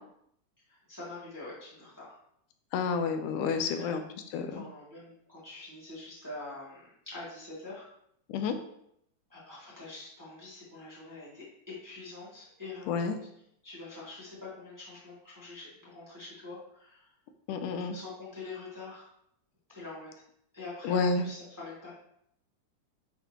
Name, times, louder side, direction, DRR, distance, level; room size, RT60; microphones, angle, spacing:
voice 1, 0.7-2.2 3.6-3.9 4.5-7.8 9.3-13.2 13.6-17.1 17.9-19.1 19.7-20.1 20.5-22.0, left 3 dB, 10° right, -8 dB, 1.5 m, -45 dB
voice 2, 2.7-4.0 4.3-4.6 8.3-8.5 12.9-13.2 17.5-18.0 20.8-21.3, left 5 dB, 85° left, 8 dB, 2.2 m, -29 dB
8.7 x 4.2 x 2.9 m, 0.72 s
omnidirectional pair, 3.6 m